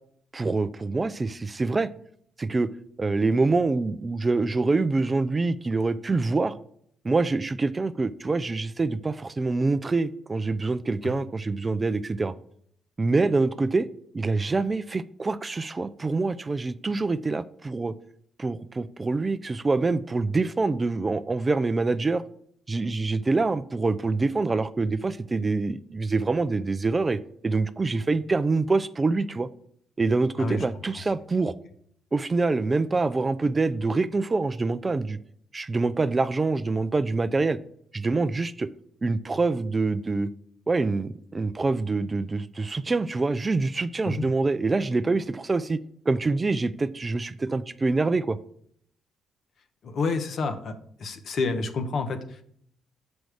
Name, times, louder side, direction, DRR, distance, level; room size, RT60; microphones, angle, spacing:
voice 1, 0.3-1.9 2.4-2.7 3.0-6.6 7.0-12.3 13.0-13.9 14.1-17.9 18.4-22.2 22.7-29.5 30.0-31.5 32.1-35.2 35.5-37.6 37.9-38.7 39.0-40.3 40.7-45.8 46.1-48.4, right 3 dB, 25° right, 0.3 m, -25 dB
voice 2, 49.8-50.7 51.0-52.4, left 3 dB, 55° left, 0.8 m, -28 dB
6.3 x 5.2 x 4.8 m
cardioid pair, 90°, 0 cm